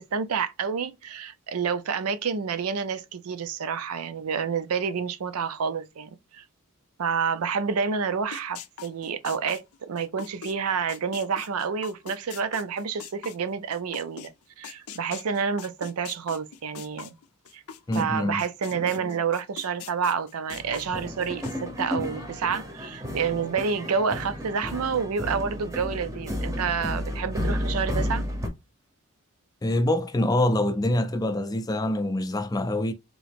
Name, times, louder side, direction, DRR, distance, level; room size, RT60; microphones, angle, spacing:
voice 1, 0.0-6.4 7.0-17.1 17.5-17.6 17.9-28.2, right 6 dB, 85° right, 0.5 m, -29 dB
sound 1, 8.3-14.3 14.6-18.0 18.4-21.5, left 7 dB, 90° left, 0.5 m, -41 dB
voice 2, 17.9-18.4 29.6-32.9, left 1 dB, 15° left, 0.4 m, -25 dB
sound 2, 20.5-28.5, equal, 15° right, 0.7 m, -32 dB
3.7 x 2.8 x 3.4 m
head